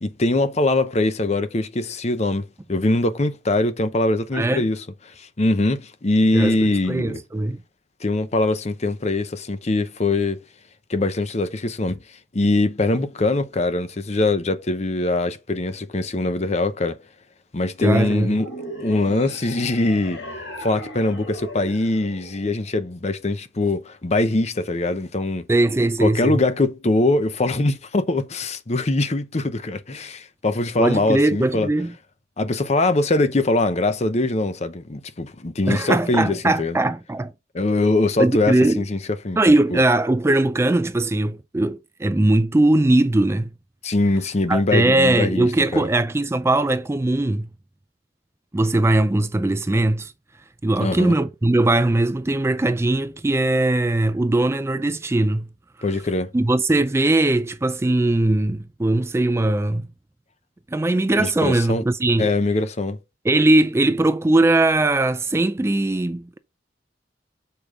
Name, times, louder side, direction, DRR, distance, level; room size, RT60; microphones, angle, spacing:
voice 1, 0.0-7.2 8.0-10.4 10.9-12.0 12.3-17.0 17.5-18.5 18.8-20.2 20.6-25.5 26.0-31.7 32.4-36.8 37.5-39.0 39.2-39.4 39.7-39.8 43.8-45.9 50.8-51.1 55.8-56.3 61.2-61.8 62.2-63.0, left 2 dB, 35° left, 0.7 m, -22 dB
voice 2, 4.3-4.6 6.3-7.6 17.8-18.4 25.5-26.4 30.8-31.9 35.7-37.3 38.2-38.8 39.4-43.5 44.5-47.5 48.5-50.1 50.6-55.5 56.3-59.9 60.7-62.3 63.2-66.4, right 2 dB, 15° right, 0.3 m, -20 dB
sound 1, 18.3-22.8, equal, 80° left, 3.9 m, -37 dB
6.9 x 4.9 x 3.8 m
head